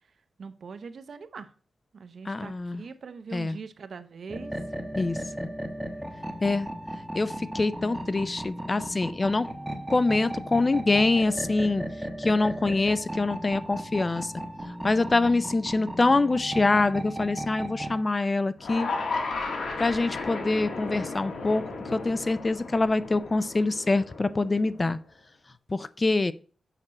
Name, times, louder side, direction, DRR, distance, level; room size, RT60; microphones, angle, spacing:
voice 1, 0.4-1.5 1.9-4.5, right 5 dB, 60° right, 10 dB, 0.7 m, -42 dB
voice 2, 2.2-2.8 3.3-3.6 5.0-5.5 6.4-6.7 7.1-9.5 9.9-14.3 14.6-18.9 19.8-21.6 21.9-25.0 25.7-26.3, left 3 dB, 25° left, 15 dB, 0.4 m, -25 dB
sound 1, 4.3-18.0, right 1 dB, 10° right, 1.1 m, -36 dB
sound 2, 18.6-24.8, left 3 dB, 85° left, 1.6 m, -34 dB
6.6 x 4.3 x 6.1 m, 0.40 s
wide cardioid pair, 135°, 0 cm